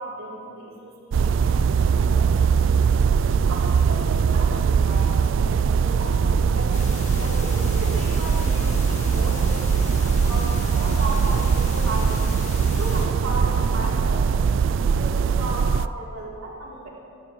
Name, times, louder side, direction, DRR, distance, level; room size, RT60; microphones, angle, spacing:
voice 1, 0.0-2.3 3.5-12.2 12.8-16.9, right 1 dB, 80° right, -5 dB, 3.3 m, -35 dB
sound 1, 1.1-15.9, right 6 dB, 60° right, 0.3 m, -21 dB
sound 2, 6.7-13.1, left 2 dB, 35° left, 1.7 m, -35 dB
25.5 x 12.0 x 3.2 m, 2.5 s
head